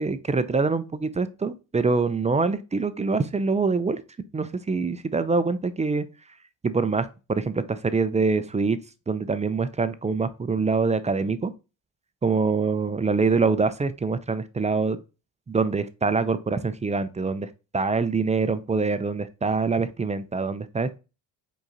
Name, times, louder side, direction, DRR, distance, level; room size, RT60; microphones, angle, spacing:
voice 1, 0.0-4.0 4.3-6.0 6.6-8.8 9.1-11.5 12.2-15.0 15.5-21.0, right 4 dB, 15° right, 0.4 m, -25 dB
5.0 x 3.8 x 2.7 m
supercardioid pair, 65°, 48 cm